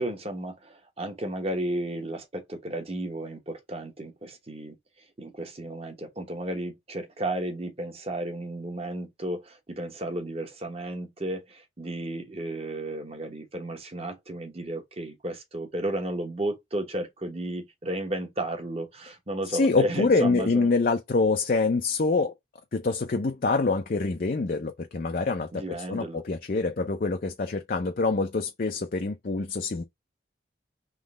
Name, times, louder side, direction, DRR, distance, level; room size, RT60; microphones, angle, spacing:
voice 1, 0.0-4.8 5.2-20.7 25.5-26.2, right 1 dB, 30° right, 1.1 m, -33 dB
voice 2, 19.5-22.3 22.7-29.8, left 3 dB, 45° left, 0.5 m, -25 dB
3.7 x 3.1 x 3.6 m
head